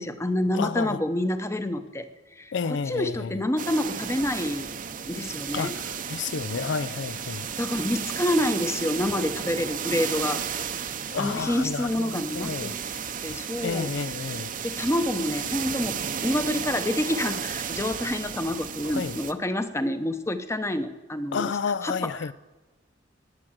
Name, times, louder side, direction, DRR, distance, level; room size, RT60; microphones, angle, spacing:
voice 1, 0.0-2.0 2.4-4.7 5.1-5.7 7.6-10.4 11.2-12.7 13.2-13.9 14.6-16.0 16.2-21.5 21.8-22.3, left 1 dB, 15° left, 0.8 m, -28 dB
voice 2, 0.5-1.0 2.5-3.4 5.5-7.5 11.1-12.7 13.6-14.5 18.8-19.2 21.3-22.3, left 5 dB, 65° left, 0.4 m, -31 dB
sound 1, 3.6-19.3, right 7 dB, 45° right, 0.8 m, -33 dB
19.5 x 7.7 x 7.4 m
head